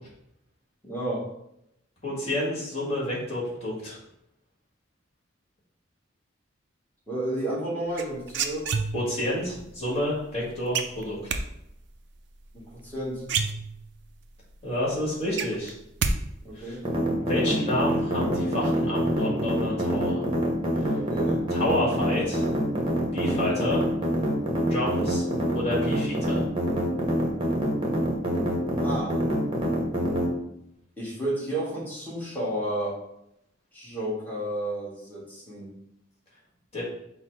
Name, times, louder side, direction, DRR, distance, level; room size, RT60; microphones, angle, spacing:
voice 1, 0.8-1.3 7.1-8.7 12.5-13.2 16.4-16.8 20.9-21.4 28.8-29.2 31.0-33.0 33.7-35.7, right 1 dB, 10° left, -6 dB, 1.3 m, -31 dB
voice 2, 2.0-4.0 8.9-11.4 14.6-15.7 16.5-16.8 17.2-20.2 21.5-22.5 23.1-23.8 24.7-25.2 25.5-26.5 36.7-36.8, left 1 dB, 30° left, -5 dB, 1.6 m, -29 dB
sound 1, 8.0-9.3 10.7-11.4 12.8-12.9 13.2-14.1 14.5-14.6 14.9-16.2 16.4-16.9, right 5 dB, 60° right, 0.4 m, -28 dB
sound 2, 16.8-30.3, equal, 25° right, 0.9 m, -25 dB
5.6 x 2.0 x 4.5 m, 0.80 s
head